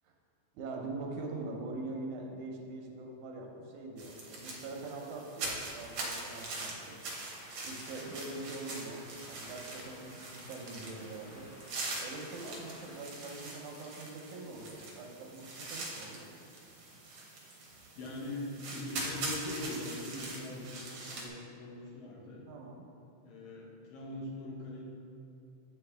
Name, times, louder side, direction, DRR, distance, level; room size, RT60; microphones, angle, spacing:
voice 1, 0.5-7.0 7.6-11.5 12.0-16.3 22.5-22.9, right 2 dB, 85° right, 1 dB, 2.2 m, -43 dB
sound 1, 4.0-21.3, right 2 dB, 65° right, 1.4 m, -43 dB
sound 2, 7.2-13.0, equal, 25° left, 1.1 m, -55 dB
voice 2, 18.0-22.5 23.2-24.8, left 1 dB, 75° left, -4 dB, 2.5 m, -42 dB
7.8 x 5.8 x 3.3 m, 2.7 s
omnidirectional pair, 3.4 m